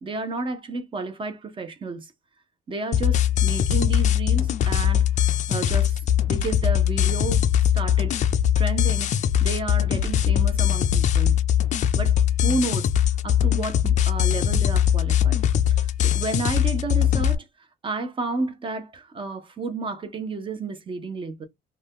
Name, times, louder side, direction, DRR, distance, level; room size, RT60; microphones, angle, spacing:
voice 1, 0.0-2.1 2.7-6.0 6.3-7.4 7.7-8.2 8.6-11.4 12.0-15.4 15.7-17.4 17.8-21.4, right 3 dB, 30° right, 0.6 m, -31 dB
sound 1, 2.9-17.3, left 10 dB, 45° left, 0.4 m, -21 dB
2.6 x 2.2 x 3.4 m
cardioid pair, 110°, 17 cm